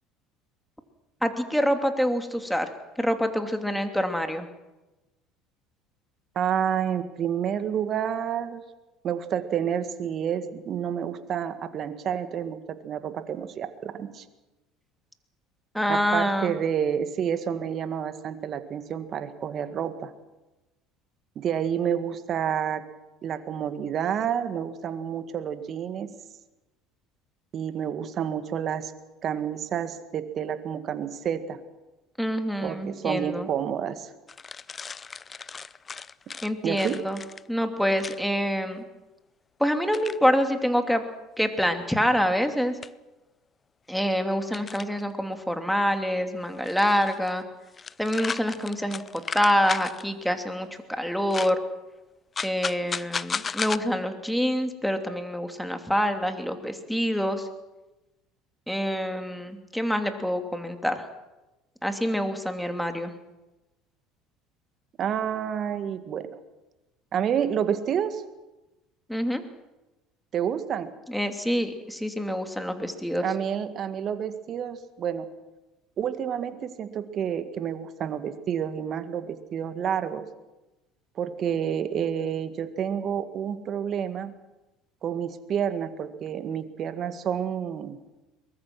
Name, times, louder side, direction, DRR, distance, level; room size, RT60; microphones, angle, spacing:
voice 1, 1.2-2.7 3.0-4.5 15.7-16.6 32.2-33.5 36.4-37.2 37.5-38.8 39.6-41.0 41.4-42.8 43.9-47.4 48.0-49.0 49.3-51.6 52.4-57.5 58.7-61.0 61.8-63.1 69.1-69.4 71.1-73.2, equal, ahead, 6 dB, 2.8 m, -26 dB
voice 2, 6.4-8.6 9.0-14.3 15.9-20.1 21.4-22.8 23.2-26.1 27.5-28.9 29.2-31.6 32.6-34.1 36.6-37.0 65.0-66.3 67.1-68.2 70.3-70.9 73.2-75.3 76.0-80.3 81.2-84.3 85.0-88.0, right 8 dB, 50° right, 10 dB, 1.9 m, -29 dB
sound 1, 34.3-37.5 38.0-38.2 39.9-40.2 41.6-41.7 42.8-42.9 44.5-45.0 46.6-47.4 47.7-50.0 51.3-51.5 52.4-53.8, left 5 dB, 30° left, 0.6 m, -35 dB
23.0 x 21.0 x 6.2 m, 1.1 s
hypercardioid pair, 70°, 0 cm